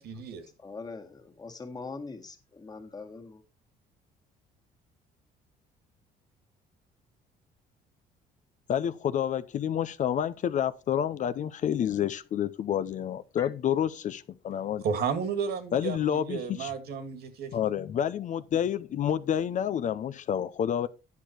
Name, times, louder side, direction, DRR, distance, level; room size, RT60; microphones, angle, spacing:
voice 1, 0.0-0.4 14.8-17.5, right 6 dB, 70° right, 2.0 m, -32 dB
voice 2, 0.6-3.4 13.4-13.5, left 4 dB, 25° left, 1.9 m, -42 dB
voice 3, 8.7-14.8 15.7-16.7 17.5-20.9, left 9 dB, 45° left, 0.6 m, -29 dB
10.0 x 6.5 x 4.4 m
cardioid pair, 110°, 17 cm